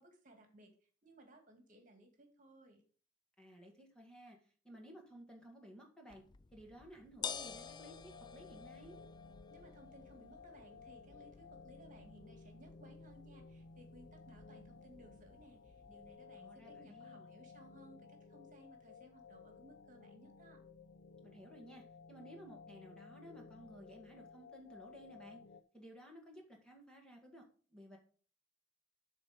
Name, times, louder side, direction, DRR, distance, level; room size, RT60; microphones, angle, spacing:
voice 1, 0.0-2.8 9.5-20.6, right 1 dB, 40° right, 4 dB, 2.1 m, -61 dB
voice 2, 3.4-6.2 6.5-9.0 16.4-17.3 21.2-25.4 25.7-27.4 27.7-28.0, equal, 5° left, 0 dB, 1.8 m, -56 dB
sound 1, 6.1-16.2, left 7 dB, 25° left, 0.3 m, -52 dB
sound 2, 7.2-25.6, left 4 dB, 75° left, 0.6 m, -57 dB
12.5 x 4.3 x 5.1 m, 0.42 s
head